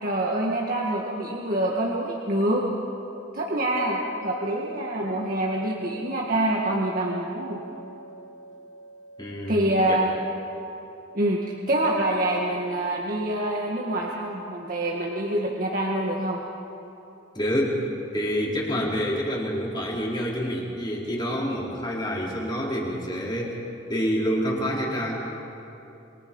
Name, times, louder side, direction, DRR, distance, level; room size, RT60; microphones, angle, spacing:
voice 1, 0.0-2.6 3.3-7.6 9.5-10.1 11.1-16.4, right 1 dB, 50° right, -2 dB, 1.9 m, -26 dB
sound 1, 3.8-16.9, equal, 80° left, 3.0 m, -45 dB
voice 2, 9.2-9.6 9.9-10.0 17.3-17.8 18.1-23.6 23.9-25.3, equal, 25° left, -4 dB, 4.2 m, -27 dB
28.0 x 23.0 x 5.4 m, 2.9 s
head